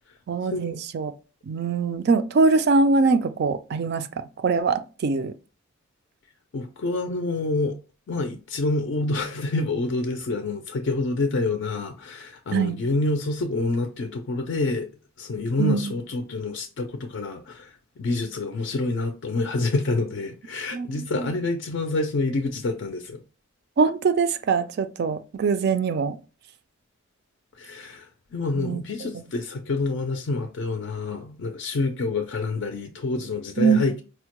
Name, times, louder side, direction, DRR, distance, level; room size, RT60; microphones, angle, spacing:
voice 1, 0.3-1.1 1.5-5.3 12.5-12.8 15.6-15.9 20.7-21.3 23.8-26.2 28.5-28.8 29.1-29.2 33.6-33.9, right 4 dB, 50° right, 0.3 m, -23 dB
voice 2, 6.5-7.8 8.1-14.9 15.2-23.2 27.6-34.0, left 2 dB, 55° left, 0.4 m, -27 dB
4.4 x 2.1 x 2.9 m
head